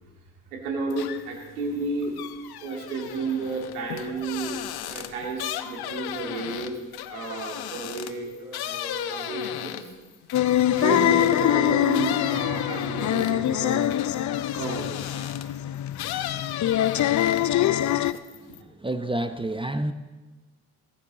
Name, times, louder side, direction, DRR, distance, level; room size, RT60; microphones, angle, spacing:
voice 1, 0.5-2.2 2.6-6.8 7.1-9.9 10.8-14.0 14.5-15.3, right 3 dB, 90° right, 1 dB, 2.4 m, -32 dB
sound 1, 0.9-1.4 1.8-11.5 11.9-15.6 15.9-17.6 18.0-18.6, left 12 dB, 60° left, 0.9 m, -36 dB
sound 2, 10.3-18.1, left 12 dB, 45° left, 0.6 m, -24 dB
voice 2, 18.8-19.9, right 1 dB, 10° right, 10 dB, 0.9 m, -28 dB
20.0 x 10.5 x 4.0 m, 1.2 s
hypercardioid pair, 45°, 43 cm